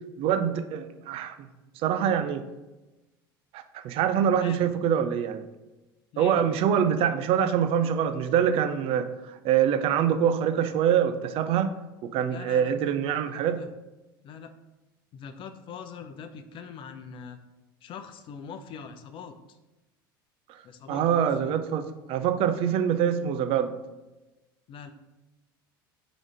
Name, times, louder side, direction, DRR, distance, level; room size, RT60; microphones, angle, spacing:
voice 1, 0.2-1.4 1.8-2.4 3.5-5.4 6.2-11.7 12.0-13.6 20.9-23.7, right 8 dB, 55° right, 10 dB, 0.6 m, -25 dB
voice 2, 4.3-4.7 6.1-6.5 12.3-12.9 13.3-13.7 14.2-14.5 15.1-17.4 17.8-19.6 20.6-21.5 24.7-24.9, left 6 dB, 45° left, 8 dB, 0.6 m, -42 dB
5.0 x 4.0 x 4.8 m, 1.1 s
hypercardioid pair, 75°, 12 cm